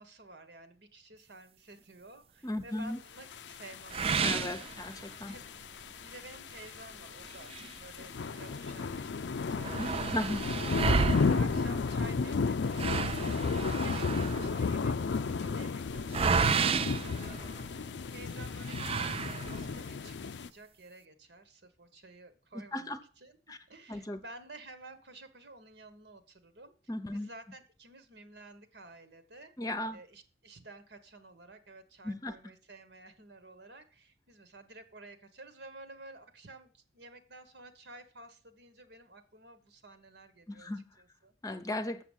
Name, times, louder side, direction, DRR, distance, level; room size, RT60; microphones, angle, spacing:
voice 1, 0.0-4.7 5.2-5.5 6.0-10.4 11.0-23.4 23.7-26.7 27.1-29.6 29.9-40.7 41.0-41.3, right 2 dB, 70° right, 1.4 m, -52 dB
voice 2, 2.4-3.0 4.2-5.3 9.8-10.4 22.5-23.0 23.5-23.6 23.9-24.2 26.9-27.3 29.6-30.0 32.0-32.4 40.5-40.8 41.4-42.0, left 1 dB, 20° left, 0.8 m, -36 dB
sound 1, 3.3-20.5, left 4 dB, 85° left, 0.5 m, -34 dB
sound 2, 3.9-5.4 5.8-5.9 6.4-6.5 7.2-8.6 8.9-9.0 9.2-18.0 18.6-19.8, right 5 dB, 35° right, 0.4 m, -32 dB
7.3 x 7.0 x 7.3 m
head